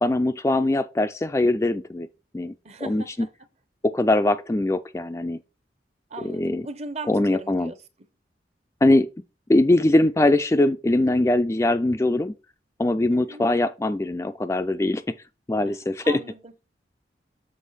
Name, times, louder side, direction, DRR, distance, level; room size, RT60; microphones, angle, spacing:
voice 1, 0.0-2.1 2.3-2.5 2.8-3.0 3.8-5.4 6.2-6.6 7.1-7.7 8.8-9.1 9.5-12.3 12.8-15.2 15.5-16.2, left 2 dB, 15° left, 0.3 m, -21 dB
voice 2, 2.6-3.3 6.1-7.8 13.1-13.4 15.6-15.7 16.0-16.7, right 2 dB, 35° right, 0.8 m, -38 dB
7.3 x 3.4 x 5.5 m
head